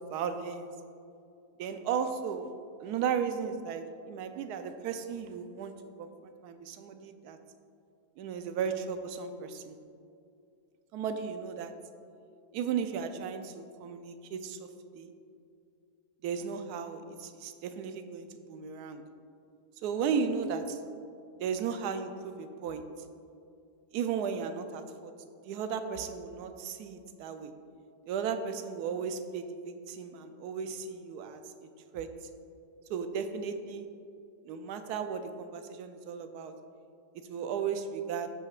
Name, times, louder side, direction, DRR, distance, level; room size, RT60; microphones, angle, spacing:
voice 1, 0.1-0.7 1.6-2.5 2.8-5.7 6.0-7.4 8.2-9.8 10.9-11.7 12.5-14.7 14.9-15.1 16.2-19.0 19.8-20.8 21.4-22.8 23.9-25.1 25.4-27.5 28.1-31.4 31.9-32.1 32.9-33.9 34.5-36.5 37.3-38.3, right 6 dB, 75° right, 8 dB, 1.1 m, -35 dB
13.5 x 5.8 x 2.4 m, 2.5 s
omnidirectional pair, 1.8 m